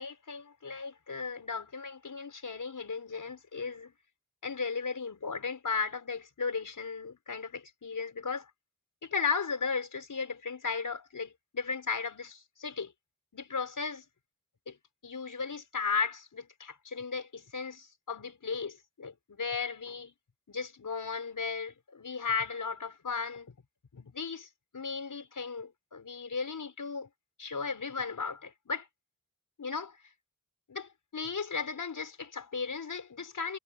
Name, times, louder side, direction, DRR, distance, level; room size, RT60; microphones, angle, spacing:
voice 1, 0.0-3.9 4.4-8.5 9.0-12.9 13.3-14.0 14.7-14.8 15.0-20.1 20.5-23.5 23.9-27.1 27.4-28.9 29.6-30.0 30.7-33.6, left 5 dB, 75° left, 5.8 m, -36 dB
wide cardioid pair, 65°, 32 cm